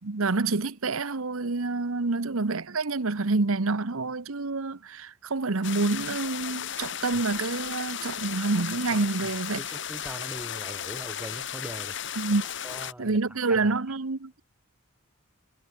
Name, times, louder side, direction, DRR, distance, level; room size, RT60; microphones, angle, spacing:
voice 1, 0.0-9.6 12.2-12.4 13.0-14.4, right 3 dB, 80° right, 1.1 m, -27 dB
sound 1, 5.6-12.9, left 9 dB, 55° left, 2.4 m, -35 dB
voice 2, 8.9-9.3 9.6-12.0 12.6-13.2 13.5-13.7, equal, 5° right, 1.0 m, -41 dB
head